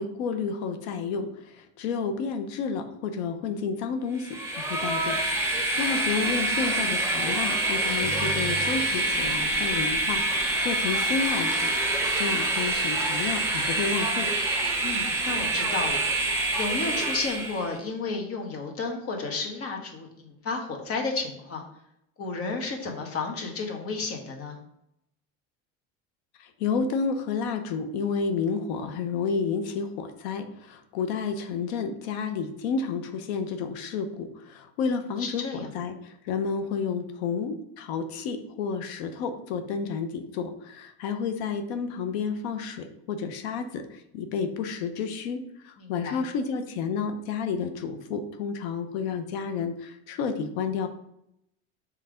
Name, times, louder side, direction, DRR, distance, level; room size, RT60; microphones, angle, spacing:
voice 1, 0.0-11.7 12.1-14.3 26.4-35.4 35.7-50.9, left 5 dB, 85° left, 8 dB, 0.8 m, -31 dB
Train, 4.2-17.7, right 2 dB, 10° right, 1.2 m, -26 dB
sound 1, 8.0-10.9, right 6 dB, 30° right, 0.7 m, -40 dB
voice 2, 14.8-16.0 16.5-21.6 22.2-24.6 35.2-35.7 45.8-46.2, left 4 dB, 45° left, 2 dB, 1.5 m, -32 dB
5.7 x 3.3 x 5.0 m, 0.78 s
supercardioid pair, 115°, 32 cm